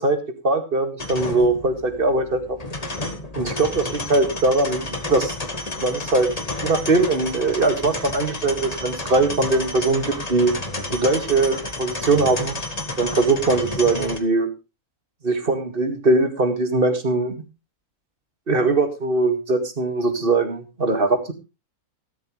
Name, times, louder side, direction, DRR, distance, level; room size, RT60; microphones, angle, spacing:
voice 1, 0.0-2.6 3.4-5.4 5.8-6.3 6.6-10.5 10.9-12.6 13.0-14.5 15.2-17.3 18.5-21.3, right 3 dB, 35° right, 8 dB, 2.2 m, -21 dB
sound 1, 1.0-14.2, left 2 dB, 25° left, 1.8 m, -31 dB
14.5 x 12.5 x 3.2 m, 0.28 s
omnidirectional pair, 1.6 m